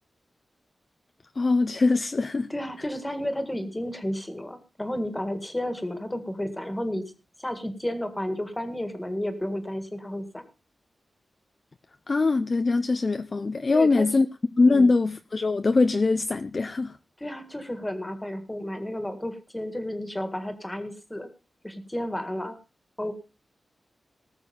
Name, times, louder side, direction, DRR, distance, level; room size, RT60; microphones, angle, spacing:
voice 1, 1.4-2.5 12.1-14.3 14.6-17.0, left 3 dB, 35° left, 0.6 m, -22 dB
voice 2, 2.5-7.1 7.4-10.4 13.7-14.1 14.7-14.9 17.2-21.3 21.6-22.6 23.0-23.1, left 1 dB, 10° left, 1.8 m, -32 dB
18.5 x 6.8 x 5.3 m
wide cardioid pair, 145°, 0 cm